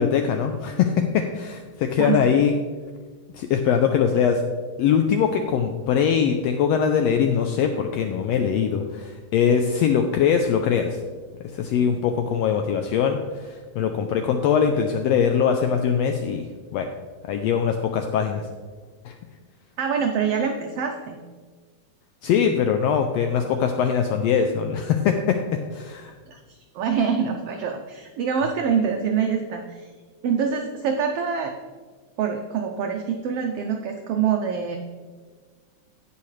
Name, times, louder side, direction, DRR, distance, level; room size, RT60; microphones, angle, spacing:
voice 1, 0.0-2.5 3.3-4.4 4.8-11.0 11.5-16.5 16.7-16.9 17.3-18.4 19.0-19.1 22.2-25.4 25.7-26.1, left 7 dB, 85° left, 6 dB, 1.5 m, -22 dB
voice 2, 19.8-21.2 26.3-26.4 26.7-29.9 30.2-31.5 32.2-34.8, right 6 dB, 85° right, 4 dB, 1.3 m, -25 dB
16.5 x 5.7 x 3.2 m, 1.5 s
omnidirectional pair, 3.5 m